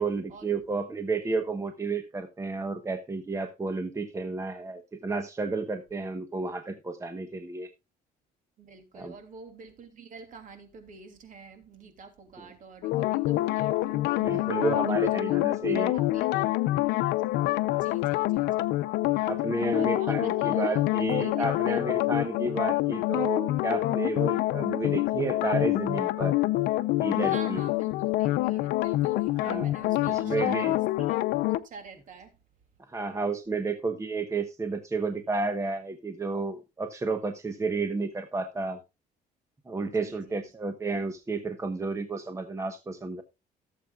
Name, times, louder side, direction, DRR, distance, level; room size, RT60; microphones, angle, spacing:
voice 1, 0.0-7.7 8.9-9.1 12.4-12.5 14.2-15.9 16.3-16.4 17.7-17.8 18.5-18.6 19.2-26.4 27.0-27.6 29.4-29.7 30.0-30.7 32.9-38.8 39.7-43.2, right 3 dB, 15° right, 1.1 m, -31 dB
voice 2, 8.6-15.4 15.8-16.6 17.7-18.7 19.1-19.3 19.6-21.9 27.2-31.2 31.5-32.4 39.8-40.5, right 4 dB, 50° right, 2.9 m, -47 dB
sound 1, 12.8-31.6, left 17 dB, 85° left, 0.6 m, -26 dB
17.0 x 7.6 x 2.4 m
cardioid pair, 110°, 17 cm